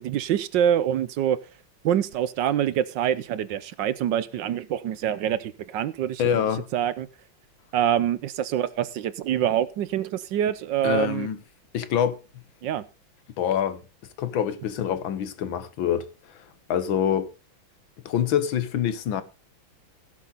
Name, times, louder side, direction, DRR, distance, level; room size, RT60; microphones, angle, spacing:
voice 1, 0.0-1.4 1.8-6.4 6.7-7.1 7.7-11.3 12.6-12.8, right 10 dB, 70° right, 1.3 m, -25 dB
voice 2, 6.2-6.7 10.8-11.4 11.7-12.2 13.4-13.8 14.2-17.3 18.1-19.2, left 9 dB, 75° left, 1.8 m, -26 dB
16.5 x 7.5 x 4.0 m
omnidirectional pair, 2.2 m